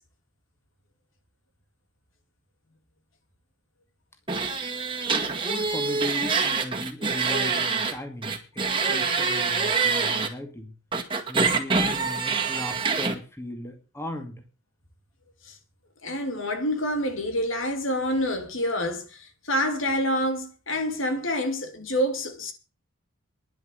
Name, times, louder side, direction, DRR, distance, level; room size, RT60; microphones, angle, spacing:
sound 1, 4.3-7.9 8.2-10.3 10.9-13.1, right 4 dB, 25° right, 2.0 m, -25 dB
voice 1, 5.4-10.7 11.3-14.4, left 1 dB, 10° left, 2.3 m, -37 dB
voice 2, 16.0-22.5, equal, 65° left, 2.8 m, -27 dB
11.0 x 8.0 x 9.3 m
head